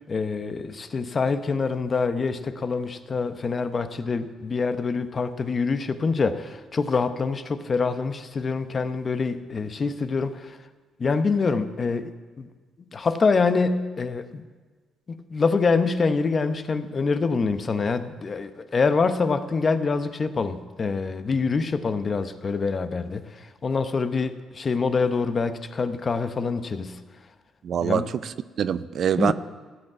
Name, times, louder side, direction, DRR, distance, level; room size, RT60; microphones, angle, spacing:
voice 1, 0.1-10.6 11.0-12.1 12.4-12.5 12.8-14.4 15.1-27.0 27.8-28.1 29.2-29.3, left 4 dB, 40° left, 0.8 m, -25 dB
voice 2, 27.6-29.3, right 8 dB, 60° right, 0.4 m, -25 dB
15.5 x 5.4 x 8.6 m
cardioid pair, 90°, 0 cm